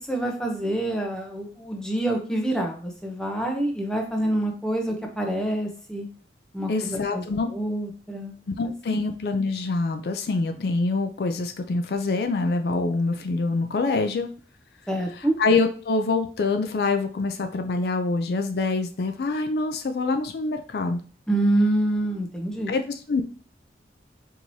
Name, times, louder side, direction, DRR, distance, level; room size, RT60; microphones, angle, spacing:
voice 1, 0.1-6.1 6.5-7.2 7.5-8.3 8.9-9.0 14.9-15.3 21.3-22.7, right 1 dB, 5° left, 1 dB, 0.6 m, -26 dB
voice 2, 6.7-7.5 8.6-14.3 15.2-21.0 22.7-23.2, left 3 dB, 60° left, 6 dB, 0.4 m, -25 dB
4.6 x 2.9 x 2.7 m, 0.40 s
head